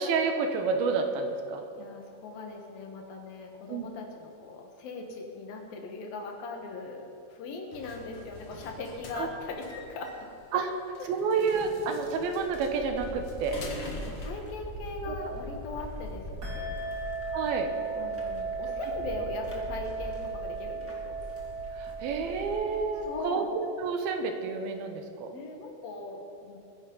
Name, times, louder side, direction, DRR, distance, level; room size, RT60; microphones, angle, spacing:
voice 1, 0.0-1.7 3.7-3.9 9.1-9.3 10.5-10.7 11.1-13.6 15.1-15.6 17.3-17.7 21.7-25.4, right 5 dB, 80° right, 5 dB, 2.9 m, -30 dB
voice 2, 1.8-7.0 7.3-10.1 10.5-10.7 11.0-11.1 13.6-16.9 18.0-21.2 23.0-23.6 25.3-26.6, left 3 dB, 75° left, 2 dB, 3.1 m, -40 dB
sound 1, 7.7-14.3, left 2 dB, 50° left, 1.8 m, -45 dB
sound 2, 12.4-23.2, equal, 10° right, 0.6 m, -42 dB
sound 3, 16.4-24.5, right 4 dB, 35° right, 1.4 m, -37 dB
22.0 x 10.0 x 3.9 m, 2.5 s
omnidirectional pair, 4.4 m